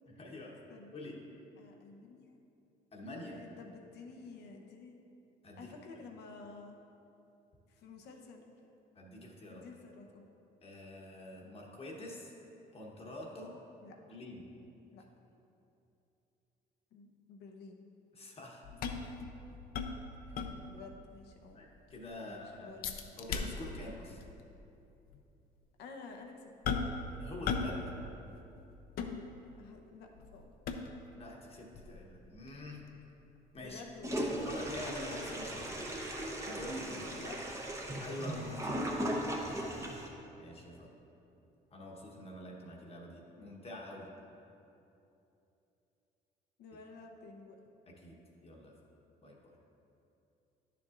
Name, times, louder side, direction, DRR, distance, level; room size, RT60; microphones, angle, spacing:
voice 1, 0.2-0.6 0.9-1.2 2.9-3.4 5.4-5.7 8.9-9.6 10.6-12.3 12.7-13.6 14.1-14.4 18.1-18.6 20.3-20.4 21.5-22.7 23.2-24.2 27.2-27.9 31.1-32.9 33.5-33.8 34.3-35.8 36.4-37.1 38.0-38.8 40.4-40.9 41.7-44.1 48.0-48.2 48.4-48.7 49.2-49.4, left 1 dB, 35° left, -2 dB, 1.1 m, -46 dB
voice 2, 1.6-2.4 3.3-5.0 5.6-6.8 7.7-8.6 9.5-10.3 13.8-14.2 14.9-15.0 16.9-17.8 20.7-21.6 22.2-23.2 25.8-26.5 29.6-30.5 33.6-34.3 37.1-38.0 38.4-39.0 43.4-43.5 46.6-47.6, left 4 dB, 80° left, 2 dB, 0.9 m, -51 dB
sound 1, 18.6-20.9 21.3-21.4 21.8-22.2 22.8-23.9 24.2-24.4 25.1-25.2 26.6-27.1 27.4-27.8 28.1-29.7 30.2-31.1 31.7-34.5 34.9-35.0, left 5 dB, 60° left, 0.6 m, -38 dB
Toilet flush, 34.0-40.1, right 1 dB, 15° right, 0.9 m, -37 dB
10.5 x 6.8 x 2.5 m, 2.9 s
cardioid pair, 110°, 17 cm